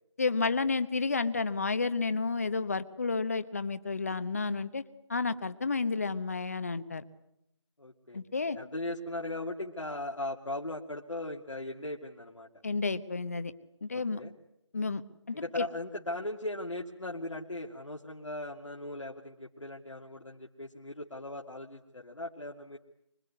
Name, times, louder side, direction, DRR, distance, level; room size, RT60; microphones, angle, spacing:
voice 1, 0.2-4.8 5.1-7.0 8.1-8.6 12.6-13.5 13.8-14.2 14.7-15.0 15.3-15.7, left 4 dB, 30° left, 14 dB, 1.1 m, -31 dB
voice 2, 7.8-8.2 8.5-12.5 13.9-14.3 15.3-22.8, left 1 dB, 80° left, -1 dB, 2.6 m, -38 dB
25.0 x 23.0 x 9.5 m, 0.80 s
figure-of-eight pair, 165°, 16 cm